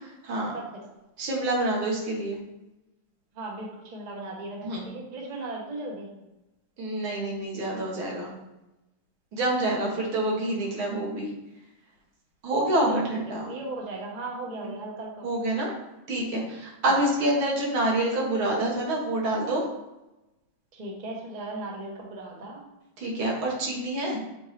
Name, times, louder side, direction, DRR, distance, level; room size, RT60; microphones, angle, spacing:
voice 1, 0.5-0.9 3.3-6.1 9.9-10.0 12.8-13.0 13.4-15.3 16.9-17.0 20.7-22.6, right 2 dB, 30° right, -1 dB, 0.8 m, -37 dB
voice 2, 1.2-2.4 4.6-4.9 6.8-8.3 9.3-11.3 12.4-13.5 15.2-15.7 16.1-19.6 23.0-24.2, right 1 dB, 85° right, -2 dB, 2.2 m, -27 dB
7.1 x 4.4 x 3.2 m, 0.96 s
omnidirectional pair, 2.2 m